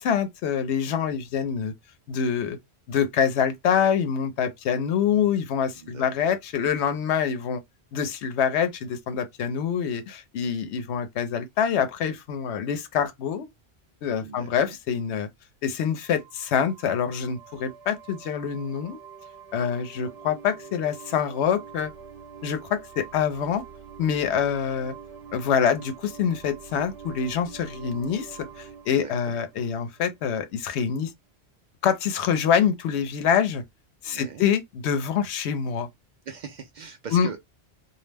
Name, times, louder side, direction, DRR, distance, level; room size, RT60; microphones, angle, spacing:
voice 1, 0.0-1.7 2.1-2.6 2.9-7.6 7.9-13.5 14.0-15.3 15.6-19.0 19.5-21.9 22.4-23.6 24.0-24.9 25.3-31.1 31.8-33.6 34.0-35.9 37.1-37.3, left 7 dB, 90° left, 0.9 m, -25 dB
voice 2, 5.8-6.3 14.2-14.8 24.2-24.5 28.9-29.1 34.0-34.4 36.3-37.4, right 6 dB, 55° right, 0.5 m, -41 dB
sound 1, 16.0-30.5, right 6 dB, 75° right, 1.0 m, -45 dB
2.4 x 2.0 x 3.2 m
omnidirectional pair, 1.1 m